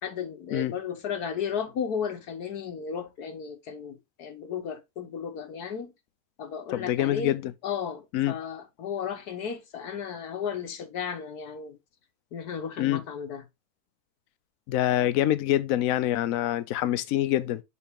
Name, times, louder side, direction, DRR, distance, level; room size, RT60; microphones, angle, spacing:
voice 1, 0.0-5.9 6.4-7.4 7.6-11.8 12.3-13.4, left 7 dB, 90° left, 1.6 m, -34 dB
voice 2, 6.7-7.5 8.1-8.4 12.8-13.0 14.7-17.6, left 13 dB, 70° left, 1.0 m, -25 dB
7.2 x 4.0 x 3.6 m
omnidirectional pair, 1.6 m